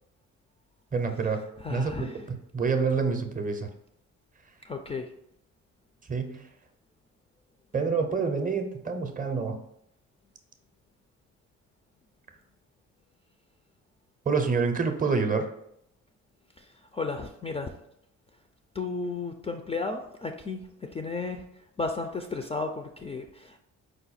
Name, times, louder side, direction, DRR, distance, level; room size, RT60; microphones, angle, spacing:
voice 1, 0.9-1.4 1.7-3.7 6.1-6.5 7.7-9.6 14.3-15.5, right 5 dB, 30° right, 6 dB, 0.6 m, -27 dB
voice 2, 1.6-2.2 4.6-5.1 16.6-17.7 18.7-21.4 21.8-23.6, left 3 dB, 20° left, 4 dB, 0.3 m, -34 dB
4.9 x 2.2 x 4.0 m, 0.75 s
cardioid pair, 90°, 30 cm